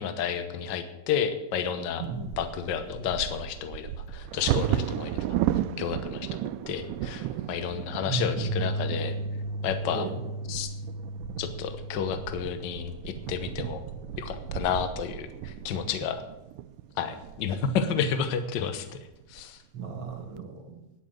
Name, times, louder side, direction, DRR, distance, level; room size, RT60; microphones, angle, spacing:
voice 1, 0.0-2.0 2.4-5.2 5.8-6.3 6.7-9.1 9.6-10.0 10.5-10.7 11.4-13.8 14.2-16.2 17.0-19.0 19.3-19.6, left 7 dB, 85° left, 9 dB, 1.0 m, -31 dB
Bird vocalization bird call bird song / Wind / Thunder, 2.0-17.9 18.6-18.7 19.0-19.4 19.9-20.4, right 11 dB, 85° right, 2.1 m, -34 dB
voice 2, 8.1-8.5 9.9-10.2 19.7-20.8, right 3 dB, 45° right, 4 dB, 2.2 m, -34 dB
Bass guitar, 8.4-14.7, right 1 dB, 65° right, 1.9 m, -36 dB
10.5 x 8.3 x 7.9 m, 0.97 s
omnidirectional pair, 3.7 m